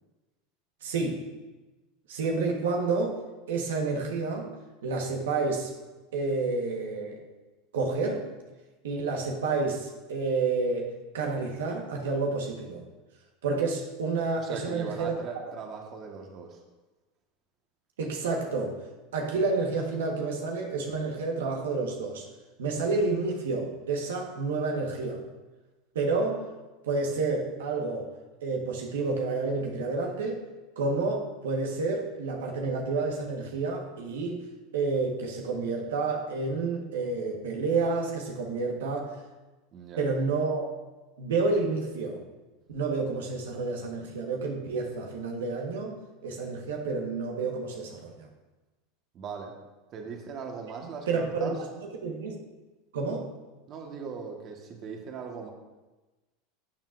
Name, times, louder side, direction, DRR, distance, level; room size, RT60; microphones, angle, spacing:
voice 1, 0.8-1.2 2.1-3.2 3.5-4.5 4.8-5.7 6.1-7.2 7.7-8.3 8.8-12.8 13.4-15.1 18.0-18.8 19.1-22.2 22.6-25.2 25.9-26.4 26.8-28.1 28.4-30.4 30.8-34.4 34.7-39.1 40.0-40.6 41.2-42.2 42.7-48.3 51.1-51.7 52.0-52.4 52.9-53.3, right 3 dB, 85° right, 1 dB, 1.3 m, -29 dB
voice 2, 14.4-16.6 39.7-40.0 49.1-49.5 49.9-51.6 53.7-55.5, right 5 dB, 45° right, 2 dB, 1.4 m, -39 dB
12.0 x 7.3 x 2.6 m, 1.1 s
supercardioid pair, 110°, 0 cm